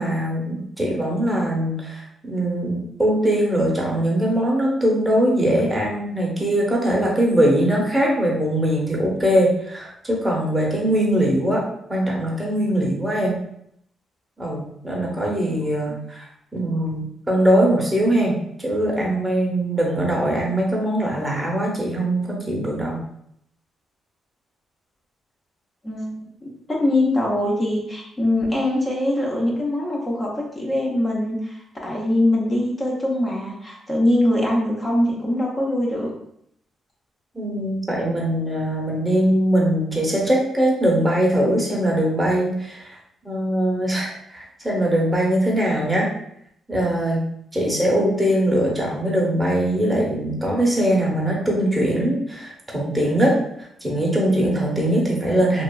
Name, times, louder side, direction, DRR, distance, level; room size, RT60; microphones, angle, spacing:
voice 1, 0.0-11.6 11.9-13.4 14.4-23.0 37.3-43.0 43.2-46.1 46.7-47.2 47.5-55.6, right 1 dB, 10° right, -3 dB, 0.8 m, -21 dB
voice 2, 25.8-36.1, left 1 dB, 25° left, -3 dB, 0.6 m, -22 dB
2.9 x 2.3 x 2.3 m, 0.72 s
cardioid pair, 105°, 0 cm